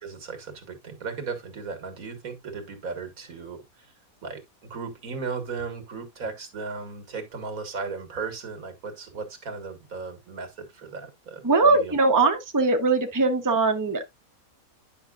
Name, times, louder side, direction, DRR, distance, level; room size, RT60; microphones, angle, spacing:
voice 1, 0.0-3.9 4.2-11.9, right 4 dB, 75° right, 2.1 m, -36 dB
voice 2, 11.4-14.0, right 3 dB, 15° right, 0.9 m, -21 dB
10.0 x 5.7 x 2.4 m
omnidirectional pair, 1.5 m